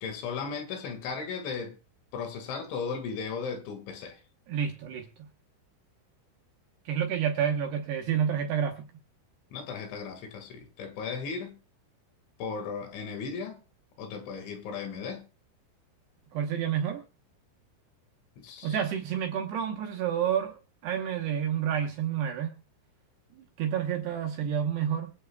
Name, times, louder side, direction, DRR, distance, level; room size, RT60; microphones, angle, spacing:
voice 1, 0.0-1.8 2.1-4.2 9.5-11.6 12.4-13.6 14.0-15.3 18.4-18.8, left 5 dB, 70° left, 4.1 m, -36 dB
voice 2, 4.5-5.3 6.8-8.9 16.3-17.1 18.6-22.5 23.3-25.1, right 8 dB, 70° right, 2.7 m, -29 dB
24.5 x 9.3 x 2.3 m
omnidirectional pair, 5.9 m